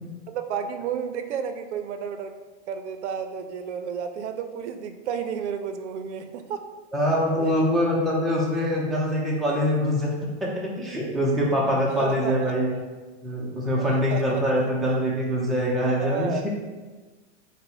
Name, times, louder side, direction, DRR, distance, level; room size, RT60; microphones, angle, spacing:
voice 1, 0.3-2.3 2.7-6.6 7.4-7.5 12.0-12.5 13.8-14.4 16.0-16.5, right 7 dB, 70° right, 7 dB, 0.5 m, -32 dB
voice 2, 6.9-10.1 10.4-12.7 13.2-16.5, equal, ahead, -5 dB, 0.4 m, -24 dB
4.0 x 2.1 x 3.8 m, 1.3 s
hypercardioid pair, 120°, 36 cm